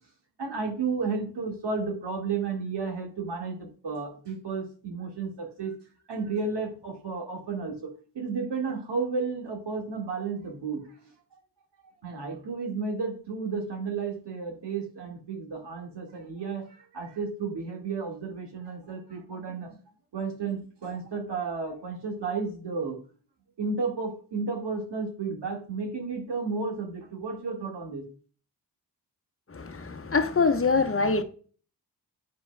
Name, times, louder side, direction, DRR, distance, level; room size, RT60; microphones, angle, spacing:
voice 1, 0.4-5.7 6.1-10.9 12.0-19.8 20.1-23.0 23.6-28.0, right 4 dB, 70° right, 2.0 m, -32 dB
voice 2, 29.5-31.2, left 4 dB, 30° left, 1.0 m, -24 dB
9.2 x 5.1 x 2.3 m
cardioid pair, 50°, 42 cm